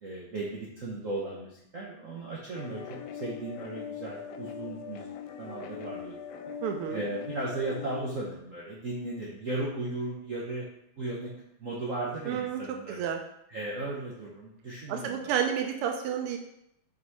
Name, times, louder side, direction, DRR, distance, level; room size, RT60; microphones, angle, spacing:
voice 1, 0.0-5.0 5.4-6.2 6.9-10.7 11.0-11.3 11.6-13.1 13.5-15.5, right 2 dB, 50° right, -4 dB, 1.0 m, -36 dB
sound 1, 2.5-8.0, left 8 dB, 90° left, 0.9 m, -41 dB
voice 2, 6.6-7.0 12.3-12.6 12.9-13.2 14.9-16.4, right 8 dB, 90° right, 4 dB, 1.6 m, -30 dB
5.4 x 4.1 x 4.7 m, 0.79 s
omnidirectional pair, 2.4 m